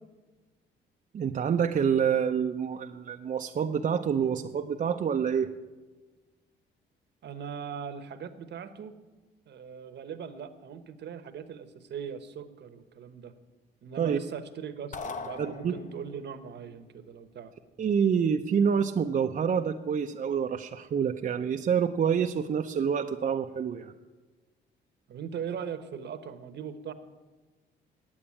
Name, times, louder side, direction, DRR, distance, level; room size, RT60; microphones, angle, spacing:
voice 1, 1.1-5.5 14.0-14.2 15.4-15.7 17.8-23.9, right 7 dB, 40° right, 5 dB, 0.5 m, -27 dB
voice 2, 7.2-8.9 9.5-13.3 13.8-17.5 25.1-26.9, right 7 dB, 60° right, 11 dB, 1.0 m, -40 dB
sound 1, 14.9-16.2, left 4 dB, 40° left, 0.9 m, -39 dB
8.8 x 8.7 x 8.6 m, 1.2 s
cardioid pair, 90°, 20 cm